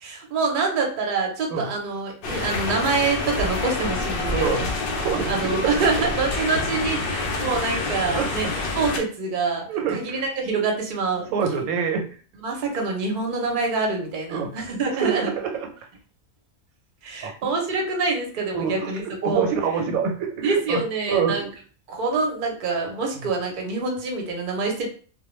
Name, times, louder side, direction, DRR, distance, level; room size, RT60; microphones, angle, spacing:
voice 1, 0.0-4.5 5.3-11.3 12.4-15.3 17.0-19.4 19.8-19.9 20.4-21.5 21.9-24.9, right 4 dB, 50° right, 1 dB, 0.7 m, -26 dB
sound 1, 2.2-9.0, left 3 dB, 65° left, 0.5 m, -27 dB
voice 2, 4.3-5.9 8.1-8.5 9.7-10.2 10.5-10.6 11.3-12.1 14.3-14.5 15.0-15.7 17.2-17.5 18.5-18.9 19.2-20.8 21.1-21.5 23.1-23.3, right 6 dB, 90° right, 4 dB, 1.0 m, -26 dB
2.2 x 2.1 x 3.0 m, 0.42 s
omnidirectional pair, 1.4 m